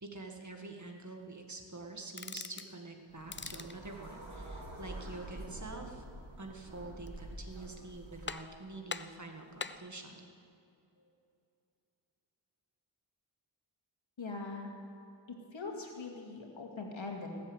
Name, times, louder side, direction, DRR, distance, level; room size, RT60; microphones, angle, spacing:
voice 1, 0.0-6.0 6.4-10.2, right 3 dB, 35° right, 3 dB, 1.9 m, -46 dB
sound 1, 2.1-2.7 3.2-3.8 6.8-7.3 7.7-7.8 8.3-8.6 8.9-9.9, left 5 dB, 25° left, 0.5 m, -43 dB
sound 2, 3.1-8.3, right 1 dB, 70° right, 3.6 m, -47 dB
voice 2, 14.2-14.7 15.5-17.3, left 3 dB, 70° left, 1 dB, 2.4 m, -41 dB
18.5 x 7.6 x 8.0 m, 2.6 s
cardioid pair, 55°, 48 cm